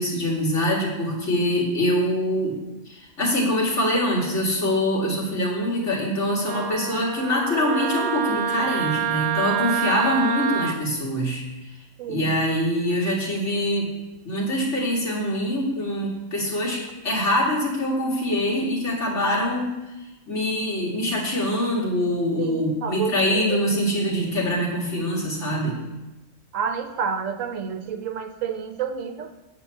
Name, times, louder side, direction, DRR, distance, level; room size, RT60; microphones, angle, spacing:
voice 1, 0.0-2.6 2.9-11.4 12.1-13.9 14.2-19.7 20.3-25.8, left 1 dB, 65° left, -4 dB, 2.6 m, -24 dB
Wind instrument woodwind instrument, 6.5-10.8, right 8 dB, 55° right, 0.7 m, -27 dB
voice 2, 12.0-12.4 22.4-23.8 26.5-29.3, right 6 dB, 80° right, 8 dB, 1.1 m, -30 dB
8.3 x 4.8 x 7.1 m, 1.0 s
omnidirectional pair, 1.3 m